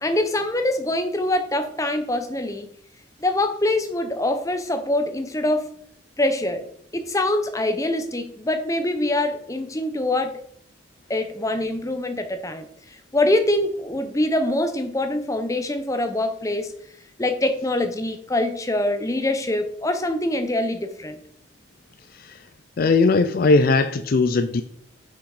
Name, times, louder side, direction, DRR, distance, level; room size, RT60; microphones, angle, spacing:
voice 1, 0.0-2.7 3.2-5.7 6.2-6.7 6.9-10.4 11.1-12.7 13.1-16.7 17.2-21.2, left 1 dB, 15° left, 7 dB, 0.7 m, -24 dB
voice 2, 22.1-22.5 22.8-24.6, left 3 dB, 45° left, 10 dB, 0.4 m, -19 dB
6.4 x 5.9 x 4.8 m, 0.66 s
head